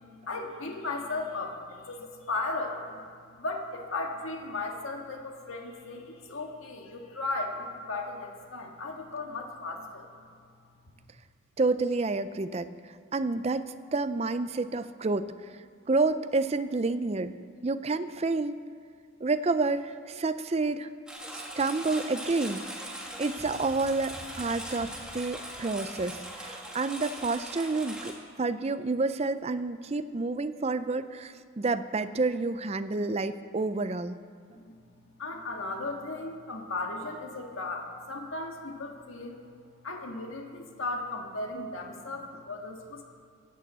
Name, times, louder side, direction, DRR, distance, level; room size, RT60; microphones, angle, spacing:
voice 1, 0.1-3.0 3.3-10.1 34.5-34.7 35.2-39.4 39.8-43.0, left 3 dB, 80° left, 1 dB, 1.6 m, -36 dB
voice 2, 11.6-12.7 13.1-15.3 15.9-17.3 17.6-18.6 19.2-20.9 21.3-22.6 23.2-34.2, right 3 dB, 30° right, 12 dB, 0.4 m, -29 dB
Engine, 21.1-28.1, right 1 dB, 5° right, 1.6 m, -40 dB
16.0 x 8.6 x 8.1 m, 2.3 s
head